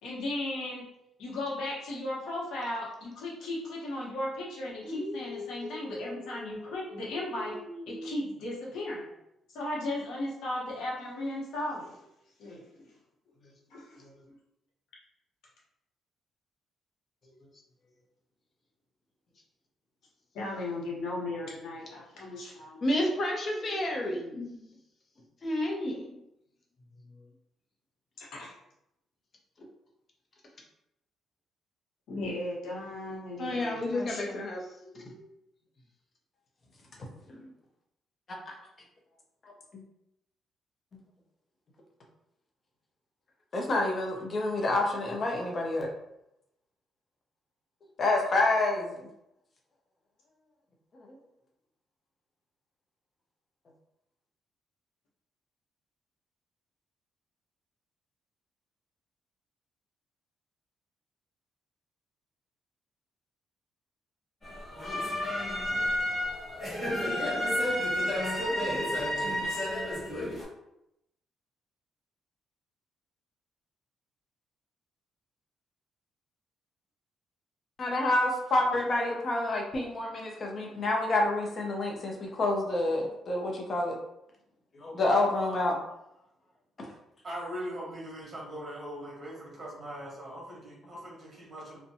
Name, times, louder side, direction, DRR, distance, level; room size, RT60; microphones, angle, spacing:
voice 1, 0.0-0.8 1.2-7.6 7.9-9.1 9.5-12.0 12.4-12.9 13.7-14.0 20.3-22.8 28.2-28.5 32.1-34.4 68.9-69.7, left 1 dB, 80° left, -4 dB, 0.9 m, -36 dB
voice 2, 4.8-6.7 7.3-8.1 22.8-24.7 25.4-26.1 33.4-35.2 37.3-37.4 38.5-38.6 39.7-39.8 43.5-45.9 48.0-49.1 50.9-51.2 77.8-84.0 84.7-85.8 86.8-86.9, left 2 dB, 45° left, 0 dB, 0.6 m, -29 dB
sound 1, 64.4-70.4, left 1 dB, 20° left, 1.4 m, -30 dB
voice 3, 87.2-91.8, equal, 40° right, -4 dB, 1.1 m, -40 dB
2.6 x 2.1 x 2.6 m, 0.83 s
cardioid pair, 90°, 0 cm